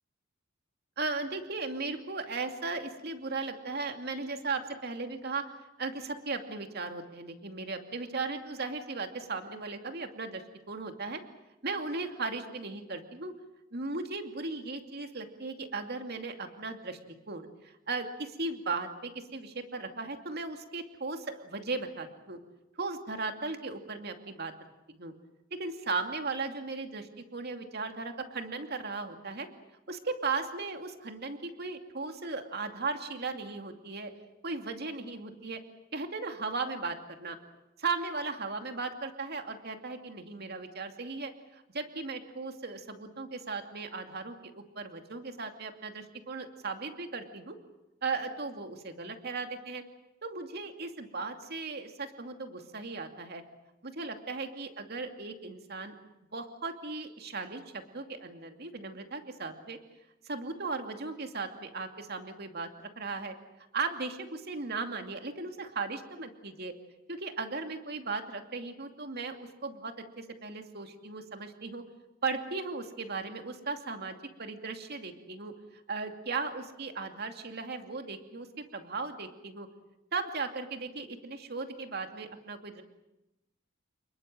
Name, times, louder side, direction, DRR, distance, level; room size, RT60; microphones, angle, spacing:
voice 1, 1.0-5.4 5.8-11.2 11.6-13.3 13.7-17.0 17.3-22.4 22.8-24.5 24.9-25.1 25.5-29.5 29.9-34.1 34.4-35.6 35.9-37.4 37.8-47.6 48.0-49.8 50.2-53.4 53.8-55.9 56.3-59.8 60.2-63.3 63.7-66.7 67.1-71.8 72.2-75.5 75.9-78.5 78.7-79.7 80.1-82.8, right 3 dB, 50° right, 6 dB, 2.6 m, -37 dB
29.5 x 21.0 x 7.7 m, 0.94 s
head